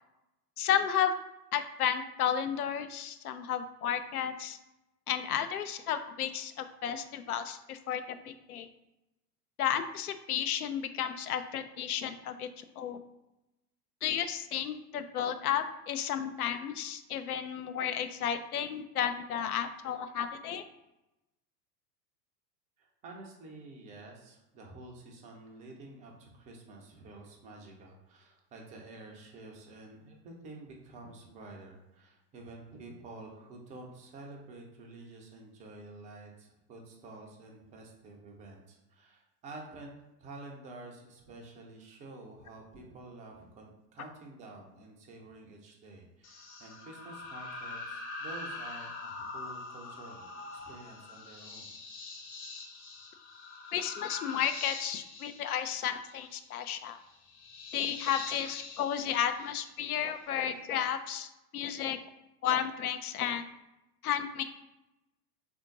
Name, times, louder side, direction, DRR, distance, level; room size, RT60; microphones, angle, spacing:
voice 1, 0.6-1.1 1.5-4.6 5.1-8.7 9.6-13.0 14.0-20.6 53.7-57.0 57.7-62.0 62.4-63.4 64.0-64.4, left 9 dB, 65° left, 9 dB, 0.5 m, -33 dB
voice 2, 22.8-51.7, right 2 dB, 15° right, 0 dB, 0.4 m, -49 dB
sound 1, 46.2-60.1, left 3 dB, 45° left, 1.1 m, -44 dB
3.6 x 2.6 x 3.8 m, 0.94 s
figure-of-eight pair, 90°, 49 cm